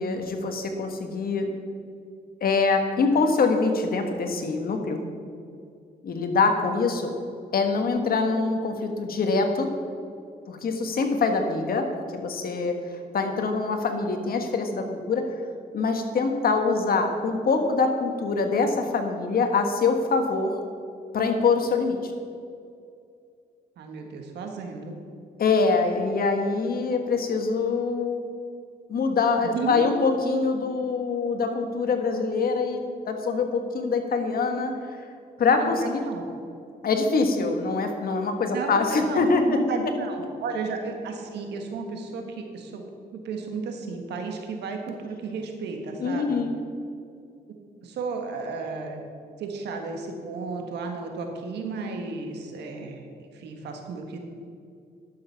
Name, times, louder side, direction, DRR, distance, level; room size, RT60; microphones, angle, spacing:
voice 1, 0.0-1.5 2.4-5.0 6.0-7.1 7.5-9.7 10.5-11.9 12.1-15.3 15.7-20.6 21.1-22.1 25.4-28.2 28.9-34.7 35.4-36.0 36.8-39.6 46.0-46.5, left 4 dB, 60° left, 5 dB, 1.5 m, -24 dB
voice 2, 23.8-24.9 29.4-29.9 35.6-36.2 38.5-42.8 43.1-46.4 47.8-49.0 49.4-54.2, right 4 dB, 90° right, 3 dB, 1.6 m, -33 dB
11.5 x 7.2 x 5.8 m, 2.4 s
cardioid pair, 90°, 17 cm